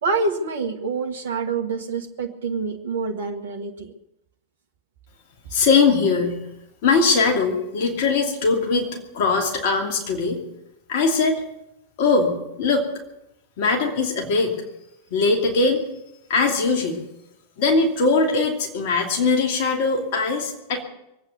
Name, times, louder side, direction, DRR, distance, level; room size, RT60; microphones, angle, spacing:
voice 1, 0.0-3.9, right 4 dB, 60° right, 2 dB, 1.4 m, -26 dB
voice 2, 5.5-6.4 6.8-10.4 10.9-11.4 12.0-12.9 13.6-14.6 15.1-15.9 16.3-17.0 17.6-20.8, left 4 dB, 50° left, 1 dB, 2.8 m, -21 dB
23.0 x 8.8 x 6.7 m, 0.87 s
figure-of-eight pair, 90°, 0 cm